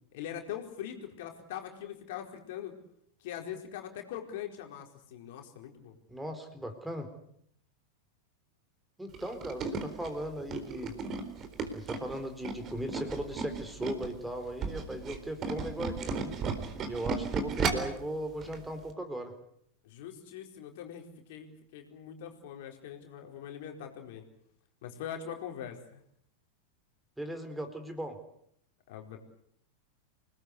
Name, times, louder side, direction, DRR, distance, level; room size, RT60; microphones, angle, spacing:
voice 1, 0.1-2.7 3.2-6.0 19.8-24.2 24.8-26.0 28.9-29.2, left 9 dB, 50° left, 3 dB, 4.4 m, -42 dB
voice 2, 6.1-7.1 9.0-10.9 11.7-16.3 16.9-19.3 27.2-28.2, right 1 dB, 5° right, 8 dB, 4.1 m, -38 dB
Tools, 9.1-14.1 14.5-18.0 18.4-18.6 18.9-19.0, right 5 dB, 30° right, 4.2 m, -34 dB
28.0 x 20.0 x 8.2 m, 0.70 s
figure-of-eight pair, 90°, 0 cm